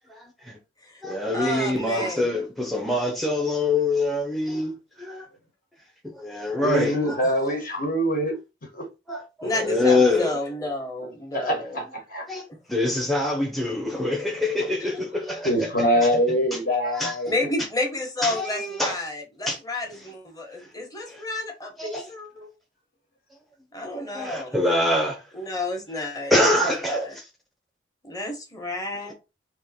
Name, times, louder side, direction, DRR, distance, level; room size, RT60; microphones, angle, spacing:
voice 1, 0.1-0.6 1.0-5.3 6.0-7.2 9.1-10.4 12.3-12.4 12.7-15.9 16.8-17.2 18.2-18.9 19.5-19.6 20.6-20.7 21.1-21.2 21.8-22.1 24.1-25.2 26.3-27.3, left 2 dB, ahead, 0.6 m, -25 dB
voice 2, 1.3-2.3 6.9-7.3 9.4-11.8 17.3-22.5 23.7-24.5 25.3-26.6 27.0-27.1 28.0-29.1, left 2 dB, 20° left, 1.3 m, -31 dB
voice 3, 6.6-8.3 8.7-8.8 11.3-11.8 12.1-12.2 15.4-17.3, equal, 50° left, 1.5 m, -23 dB
3.6 x 3.0 x 4.2 m
head